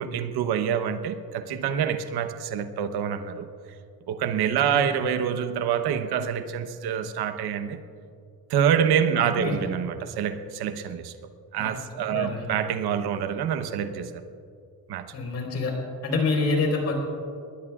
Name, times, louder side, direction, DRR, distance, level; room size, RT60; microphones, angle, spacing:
voice 1, 0.0-3.5 4.1-7.8 8.5-11.1 11.5-14.2 14.9-15.1, right 8 dB, 80° right, 1.0 m, -26 dB
voice 2, 11.5-12.5 15.1-15.7 16.0-16.9, left 3 dB, 40° left, 4.2 m, -27 dB
25.0 x 21.0 x 2.4 m
cardioid pair, 180°, 38 cm